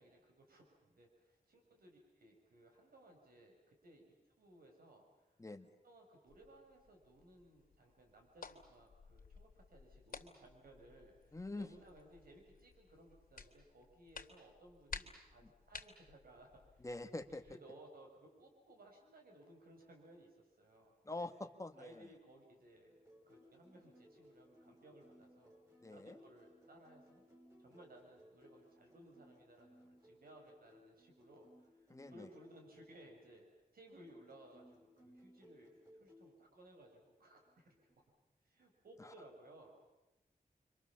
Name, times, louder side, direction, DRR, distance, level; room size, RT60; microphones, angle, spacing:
voice 1, 0.0-5.3 5.6-16.9 17.3-21.3 21.8-23.0 23.2-25.5 25.9-27.2 27.6-37.8 38.4-39.7, right 1 dB, 85° right, 1 dB, 6.0 m, -61 dB
sound 1, 6.3-17.5, left 4 dB, 70° left, 3.1 m, -55 dB
voice 2, 11.3-11.7 16.8-17.4 21.1-22.0 25.8-26.2 31.9-32.3 39.0-39.1, left 2 dB, 20° left, 7 dB, 1.8 m, -45 dB
sound 2, 22.9-33.2 34.0-36.3 37.4-37.9, equal, 20° right, 6.3 m, -64 dB
29.5 x 25.0 x 7.3 m, 1.0 s
wide cardioid pair, 135°, 15 cm